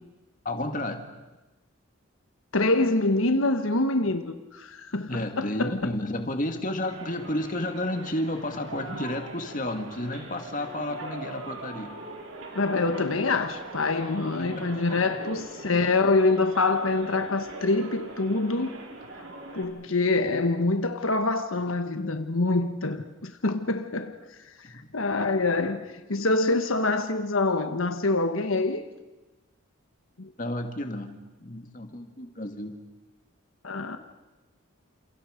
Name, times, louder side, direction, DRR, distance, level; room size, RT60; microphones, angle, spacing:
voice 1, 0.4-1.1 5.1-11.9 14.4-15.2 24.6-24.8 30.4-32.8, left 1 dB, 40° left, 2.1 m, -32 dB
voice 2, 2.5-5.9 12.5-18.7 19.5-24.1 24.9-28.8 30.2-30.3 33.6-34.0, left 3 dB, 80° left, 1.4 m, -25 dB
sound 1, 6.8-19.6, right 2 dB, 85° right, 4.8 m, -42 dB
29.5 x 28.0 x 5.2 m
head